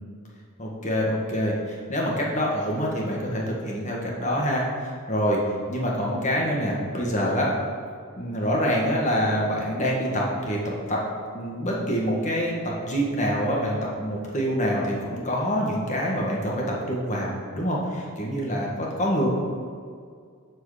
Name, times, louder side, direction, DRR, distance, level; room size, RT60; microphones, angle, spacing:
voice 1, 0.6-5.4 5.7-7.5 8.2-11.0 11.3-19.3, equal, 35° left, -3 dB, 1.7 m, -26 dB
14.0 x 4.8 x 5.0 m, 2.1 s
head